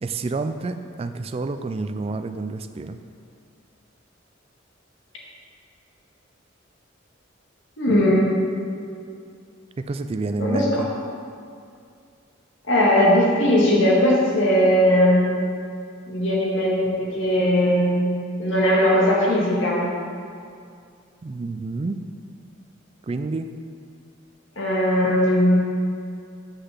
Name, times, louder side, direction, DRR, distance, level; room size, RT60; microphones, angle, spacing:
voice 1, 0.0-3.0 9.8-10.9 21.2-22.0 23.1-23.5, right 3 dB, 30° right, 8 dB, 0.3 m, -29 dB
voice 2, 7.8-8.4 10.4-10.9 12.7-15.3 16.1-18.1 18.4-19.9 24.6-25.6, equal, 75° left, -4 dB, 2.0 m, -19 dB
6.7 x 5.8 x 7.4 m, 2.3 s
head